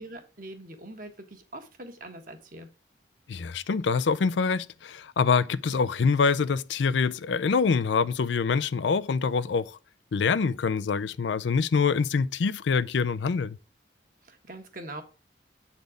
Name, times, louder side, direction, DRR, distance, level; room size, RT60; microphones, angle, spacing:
voice 1, 0.0-2.7 14.2-15.0, right 1 dB, 50° right, 1.3 m, -43 dB
voice 2, 3.3-9.8 10.1-13.6, left 5 dB, 80° left, 0.4 m, -25 dB
8.2 x 4.2 x 5.0 m
head